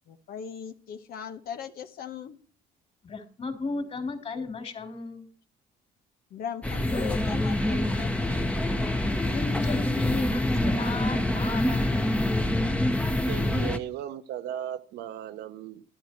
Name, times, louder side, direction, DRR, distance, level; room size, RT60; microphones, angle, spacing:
voice 1, 0.1-2.4 6.3-8.5, left 8 dB, 65° left, 1.2 m, -39 dB
voice 2, 3.0-5.3 9.3-12.3, left 3 dB, 40° left, 3.3 m, -35 dB
sound 1, 6.6-13.8, left 1 dB, 5° left, 1.1 m, -26 dB
voice 3, 13.3-15.8, right 11 dB, 80° right, 1.3 m, -36 dB
12.0 x 11.5 x 4.6 m
cardioid pair, 110°, 17 cm